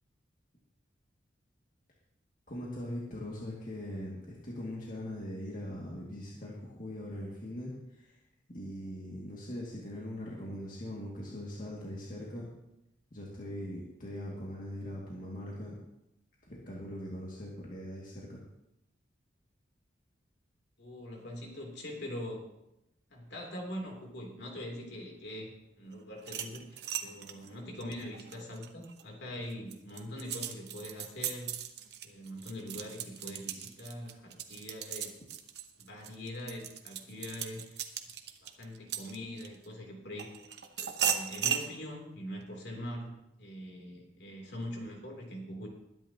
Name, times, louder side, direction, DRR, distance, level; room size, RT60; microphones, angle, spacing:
voice 1, 2.5-8.2 8.5-12.5 13.1-15.8 16.4-18.4, left 1 dB, 45° left, -4 dB, 2.2 m, -41 dB
voice 2, 20.8-22.5 23.1-31.6 32.0-35.1 35.8-37.8 38.4-40.3 41.0-45.7, left 1 dB, 65° left, 0 dB, 3.2 m, -43 dB
sound 1, 26.2-29.0 29.5-39.6 40.2-41.7, right 8 dB, 60° right, 1.0 m, -37 dB
21.0 x 10.5 x 2.9 m, 0.88 s
head